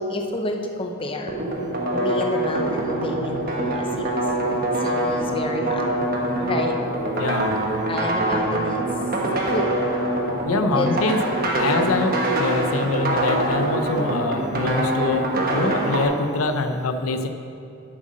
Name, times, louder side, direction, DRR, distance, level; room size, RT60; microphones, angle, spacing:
voice 1, 0.0-1.4 1.9-4.2 4.8-5.9 6.4-6.9 7.9-8.8 9.5-9.8 10.7-11.0, left 1 dB, 25° left, 3 dB, 0.7 m, -29 dB
sound 1, 1.3-16.0, right 1 dB, 40° right, 1.1 m, -24 dB
voice 2, 7.2-7.6 10.5-11.2 11.6-17.3, left 3 dB, 75° left, 8 dB, 0.6 m, -24 dB
7.7 x 7.7 x 6.3 m, 2.7 s
head